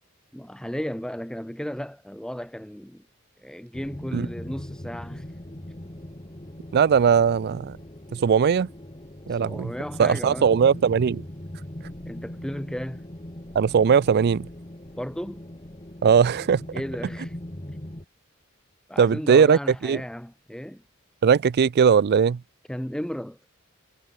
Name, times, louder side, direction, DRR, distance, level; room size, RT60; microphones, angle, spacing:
voice 1, 0.3-3.0 3.4-5.2 9.3-10.5 12.1-13.0 15.0-15.5 16.7-17.4 18.9-20.8 22.7-23.4, equal, 5° left, 0.8 m, -34 dB
sound 1, 3.7-18.0, left 1 dB, 25° left, 2.0 m, -40 dB
voice 2, 6.7-7.7 8.1-8.7 9.3-9.7 10.0-11.2 13.6-14.5 16.0-16.6 19.0-20.0 21.2-22.4, right 6 dB, 50° right, 0.4 m, -19 dB
head